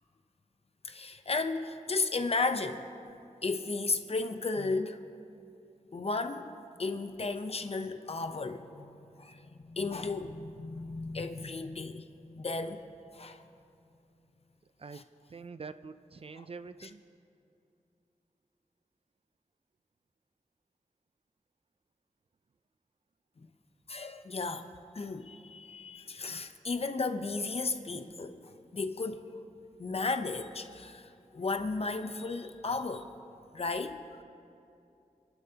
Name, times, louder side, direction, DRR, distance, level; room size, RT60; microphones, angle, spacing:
voice 1, 0.8-2.9 3.4-5.0 5.9-6.5 6.8-8.9 9.2-12.8 13.1-13.4 14.9-15.0 16.8-16.9 23.9-24.7 24.9-28.4 28.7-29.2 29.8-33.1 33.5-34.2, left 3 dB, 50° left, 0.8 m, -34 dB
voice 2, 15.3-17.0, right 4 dB, 45° right, 0.4 m, -45 dB
29.0 x 11.5 x 2.9 m
wide cardioid pair, 90°, 13 cm